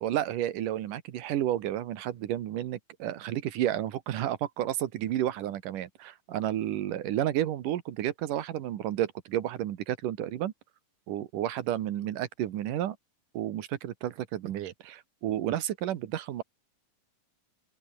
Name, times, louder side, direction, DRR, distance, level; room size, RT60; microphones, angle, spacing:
voice 1, 0.0-10.5 11.1-13.0 13.3-16.4, right 12 dB, 90° right, 3.0 m, -31 dB
open air
omnidirectional pair, 3.6 m